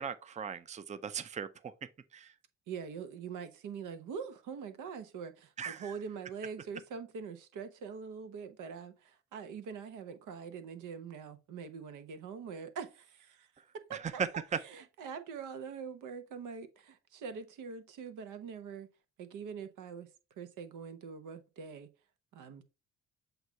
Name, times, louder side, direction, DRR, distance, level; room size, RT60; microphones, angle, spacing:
voice 1, 0.0-1.7 2.1-2.3 5.6-5.9 13.9-14.6, right 7 dB, 25° right, 0.5 m, -37 dB
voice 2, 2.7-18.9 19.2-20.1 20.4-21.9 22.3-22.6, right 6 dB, 80° right, 1.0 m, -44 dB
7.9 x 2.7 x 4.4 m
cardioid pair, 90°, 30 cm